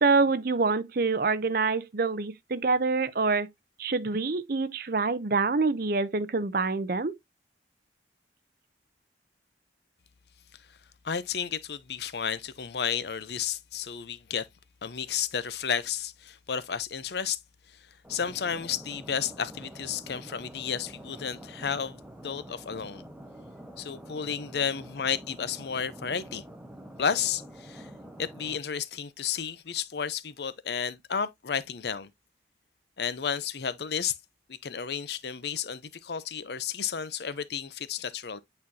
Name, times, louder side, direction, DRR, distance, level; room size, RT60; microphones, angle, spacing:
voice 1, 0.0-3.5 3.8-7.1, right 4 dB, 55° right, 0.6 m, -26 dB
voice 2, 11.0-14.5 14.8-17.4 17.7-23.0 23.8-26.4 27.0-27.9 28.2-32.1 33.0-34.2 34.5-38.4, left 7 dB, 65° left, 0.6 m, -32 dB
sound 1, 18.0-28.6, right 1 dB, 5° right, 0.8 m, -46 dB
8.6 x 4.3 x 2.7 m
head